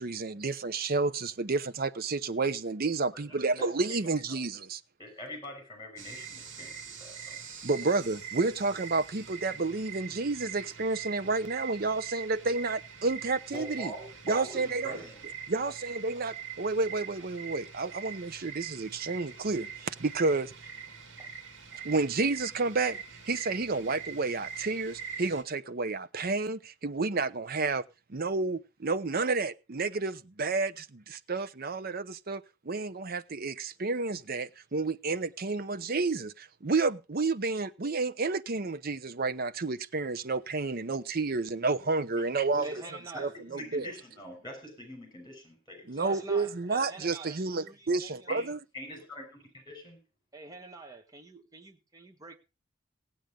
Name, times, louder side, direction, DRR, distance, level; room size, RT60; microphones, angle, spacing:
voice 1, 0.0-4.8 7.6-13.9 14.3-15.0 15.5-20.5 21.8-23.0 23.3-27.8 28.1-42.7 43.2-43.9 45.9-48.6, right 3 dB, 50° right, 0.8 m, -30 dB
voice 2, 3.1-3.7 4.3-4.4 5.0-7.4 13.5-15.2 42.5-42.8 43.1-43.2 43.5-46.2 48.3-48.5 48.7-50.0, left 1 dB, 25° left, 6.1 m, -44 dB
sound 1, 6.0-25.4, right 7 dB, 75° right, 2.4 m, -43 dB
voice 3, 42.6-43.3 45.9-48.4 50.3-52.4, right 2 dB, 20° right, 1.6 m, -46 dB
16.5 x 8.9 x 5.2 m
head